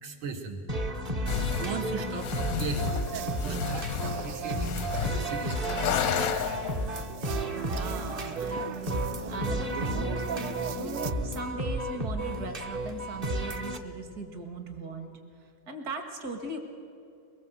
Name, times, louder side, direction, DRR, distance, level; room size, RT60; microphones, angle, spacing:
voice 1, 0.0-0.7 1.2-3.0 3.4-5.6 6.0-6.7, right 4 dB, 85° right, 3 dB, 2.2 m, -37 dB
sound 1, 0.7-13.8, right 1 dB, 25° right, 0.9 m, -32 dB
sound 2, 1.3-6.9, left 9 dB, 65° left, 0.9 m, -32 dB
sound 3, 2.6-11.1, right 8 dB, 70° right, 1.3 m, -41 dB
voice 2, 7.5-10.1 10.8-16.6, right 3 dB, 50° right, 5 dB, 2.4 m, -39 dB
22.5 x 19.5 x 7.7 m, 2.6 s
omnidirectional pair, 2.1 m